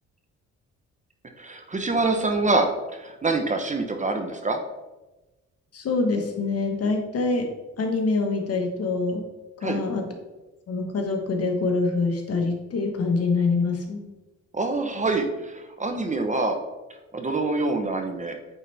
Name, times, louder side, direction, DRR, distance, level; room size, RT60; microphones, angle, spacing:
voice 1, 1.4-4.6 9.6-9.8 14.5-16.6 17.1-18.4, right 3 dB, 25° right, 5 dB, 0.9 m, -25 dB
voice 2, 5.7-9.3 9.6-10.0 10.7-14.1, left 3 dB, 55° left, 3 dB, 1.4 m, -25 dB
8.7 x 4.2 x 3.4 m, 1.1 s
cardioid pair, 90°, 30 cm